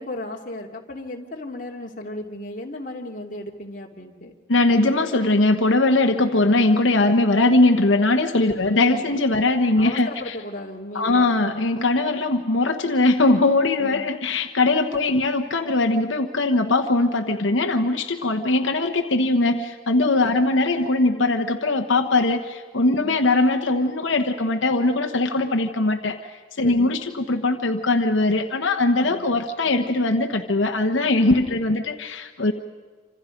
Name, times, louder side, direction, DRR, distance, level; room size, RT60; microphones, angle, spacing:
voice 1, 0.0-4.4 8.5-9.1 9.3-9.5 9.8-11.3 13.8-14.0 14.9-15.2 20.2-20.4 22.9-23.2 26.6-26.9 29.0-29.3 31.3-31.6, left 1 dB, 40° left, 0 dB, 2.4 m, -35 dB
voice 2, 4.5-10.4 10.9-26.2 26.6-32.5, left 2 dB, 80° left, 5 dB, 1.2 m, -20 dB
27.5 x 26.5 x 5.3 m, 1.5 s
head